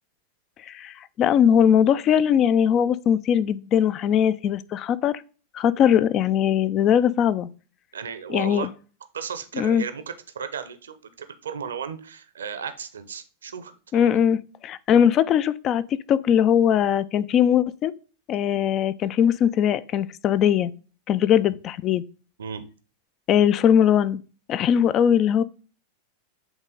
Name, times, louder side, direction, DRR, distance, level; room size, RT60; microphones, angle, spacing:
voice 1, 0.6-5.2 5.5-7.5 8.3-8.7 9.5-9.8 13.9-17.9 18.3-20.7 21.1-22.0 23.3-24.2 24.5-25.4, left 9 dB, 30° left, 0.4 m, -20 dB
voice 2, 7.9-8.7 9.1-13.7 14.0-14.1 22.4-22.6, right 7 dB, 65° right, 0.7 m, -34 dB
8.0 x 3.7 x 3.7 m
figure-of-eight pair, 90°, 0 cm